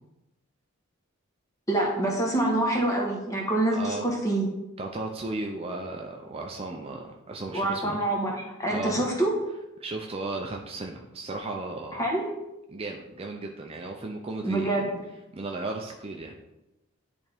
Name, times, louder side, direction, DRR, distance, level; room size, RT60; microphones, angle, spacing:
voice 1, 1.7-4.5 7.5-9.3 11.9-12.3 14.4-15.0, right 1 dB, 15° left, -1 dB, 1.3 m, -26 dB
voice 2, 3.7-4.1 4.8-8.0 8.7-9.0 9.8-12.0 12.7-14.8 15.3-16.4, right 2 dB, 25° right, 1 dB, 0.4 m, -35 dB
10.5 x 3.5 x 3.5 m, 0.97 s
head